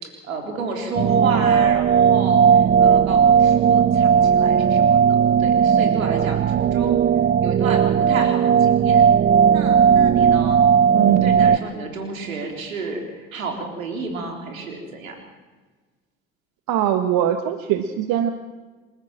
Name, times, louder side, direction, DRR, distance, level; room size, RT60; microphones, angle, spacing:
voice 1, 0.0-7.0 7.4-9.0 9.5-10.7 11.0-15.2, right 3 dB, 85° right, 4 dB, 3.9 m, -31 dB
sound 1, 1.0-11.6, right 7 dB, 25° right, 0.7 m, -16 dB
voice 2, 10.9-11.5 16.7-18.3, right 11 dB, 60° right, 8 dB, 1.6 m, -21 dB
28.0 x 13.5 x 7.6 m, 1.4 s
hypercardioid pair, 65°, 40 cm